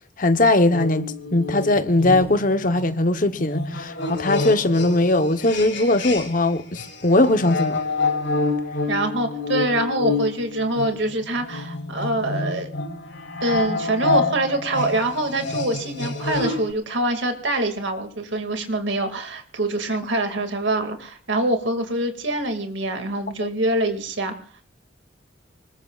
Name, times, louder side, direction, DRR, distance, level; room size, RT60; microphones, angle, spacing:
voice 1, 0.2-7.8 23.4-23.5, left 2 dB, 45° left, 1.0 m, -20 dB
sound 1, 0.7-6.5 6.8-16.7, left 3 dB, 75° left, 5.8 m, -28 dB
voice 2, 8.9-12.7 13.4-24.3, right 1 dB, 75° right, 2.3 m, -25 dB
25.0 x 20.5 x 2.4 m
head